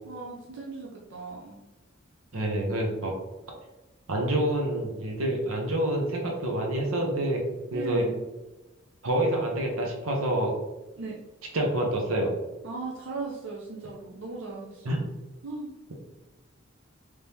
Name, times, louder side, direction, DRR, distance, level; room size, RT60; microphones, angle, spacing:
voice 1, 0.0-1.6 7.7-8.2 11.0-11.2 12.6-15.0 15.4-15.7, right 3 dB, 65° right, -3 dB, 0.6 m, -38 dB
voice 2, 2.3-3.1 4.1-7.4 7.7-8.1 9.0-10.5 11.5-12.3 14.8-15.0, right 1 dB, 90° right, 0 dB, 0.9 m, -27 dB
3.4 x 3.3 x 2.8 m, 1.1 s
head